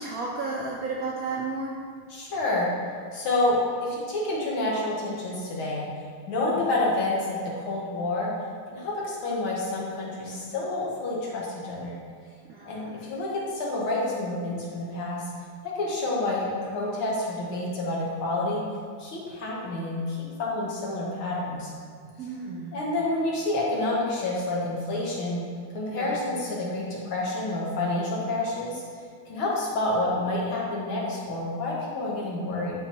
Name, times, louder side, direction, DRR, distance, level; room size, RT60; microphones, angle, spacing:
voice 1, 0.0-1.8 12.5-12.9 22.2-22.7 25.9-26.2, right 3 dB, 70° right, -4 dB, 0.8 m, -33 dB
voice 2, 2.1-2.7 3.1-5.9 6.3-8.3 8.7-12.0 12.7-15.2 15.8-18.6 19.0-21.7 22.7-25.4 25.7-28.8 29.3-32.7, left 2 dB, 80° left, -5 dB, 2.2 m, -28 dB
10.5 x 4.0 x 2.9 m, 2.2 s
omnidirectional pair, 2.3 m